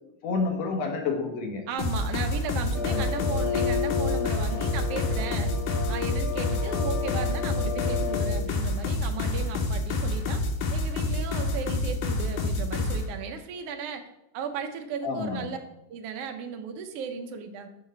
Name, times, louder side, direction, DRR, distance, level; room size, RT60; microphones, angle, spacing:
voice 1, 0.2-1.6 2.9-3.0 15.0-15.5, left 4 dB, 60° left, 2 dB, 2.2 m, -29 dB
voice 2, 1.7-5.5 5.9-10.4 10.7-14.0 14.3-15.6 15.9-17.7, right 6 dB, 70° right, 5 dB, 1.5 m, -35 dB
sound 1, 1.8-13.0, left 2 dB, 85° left, 2.4 m, -28 dB
sound 2, 2.7-8.4, left 7 dB, 20° left, 2.5 m, -32 dB
6.4 x 4.9 x 5.5 m, 0.87 s
omnidirectional pair, 3.4 m